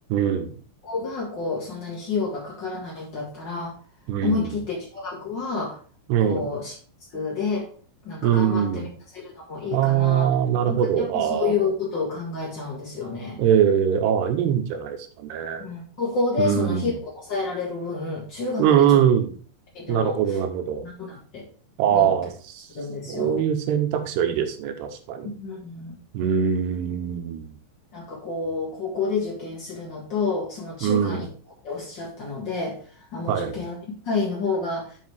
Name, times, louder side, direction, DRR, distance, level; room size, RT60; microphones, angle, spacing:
voice 1, 0.1-0.5 4.1-4.6 6.1-6.5 8.2-8.9 9.7-11.5 13.4-15.7 16.4-16.9 18.6-19.3 19.9-20.8 21.8-22.7 23.1-25.3 26.1-27.5 30.8-31.3 33.3-33.6, right 9 dB, 75° right, 7 dB, 2.9 m, -22 dB
voice 2, 0.8-3.7 4.2-5.8 6.2-6.7 7.1-7.7 8.0-8.9 9.1-10.3 10.7-13.4 15.6-19.0 19.7-20.2 20.8-21.4 21.9-22.1 22.7-23.4 25.4-25.9 27.9-31.2 31.6-32.8 33.1-33.7 34.0-34.9, left 4 dB, 80° left, -4 dB, 1.0 m, -29 dB
7.5 x 5.0 x 4.7 m, 0.41 s
omnidirectional pair, 5.1 m